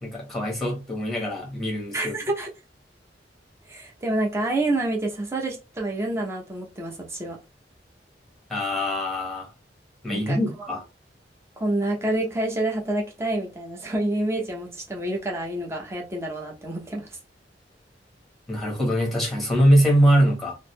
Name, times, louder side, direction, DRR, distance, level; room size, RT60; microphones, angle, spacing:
voice 1, 0.0-2.1 8.5-9.5 10.0-10.8 18.5-20.5, equal, ahead, 1.3 m, -22 dB
voice 2, 1.9-2.5 3.7-7.4 10.1-10.4 11.6-17.1, right 2 dB, 15° right, 0.8 m, -28 dB
3.7 x 2.0 x 3.2 m
head